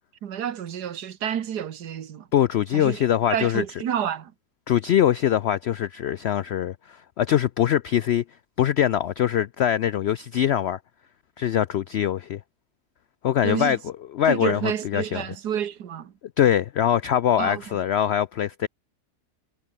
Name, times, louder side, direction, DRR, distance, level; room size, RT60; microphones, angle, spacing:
voice 1, 0.2-2.3 2.7-3.0 3.3-4.3 13.4-13.8 14.3-16.1 17.4-17.8, right 9 dB, 90° right, 1.8 m, -29 dB
voice 2, 2.3-3.6 4.7-8.2 8.6-10.8 11.4-12.4 13.2-15.2 16.4-18.7, left 10 dB, 80° left, 0.5 m, -23 dB
omnidirectional pair, 1.7 m